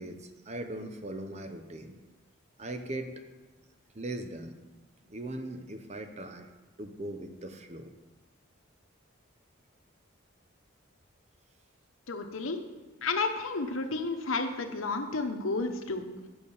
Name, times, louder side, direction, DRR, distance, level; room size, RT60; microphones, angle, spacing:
voice 1, 0.0-2.0 2.6-3.2 3.9-4.6 5.1-7.9, right 1 dB, 35° right, 7 dB, 0.7 m, -40 dB
voice 2, 12.1-12.6 13.0-16.1, left 3 dB, 85° left, 6 dB, 1.0 m, -31 dB
8.8 x 6.8 x 5.5 m, 1.2 s
head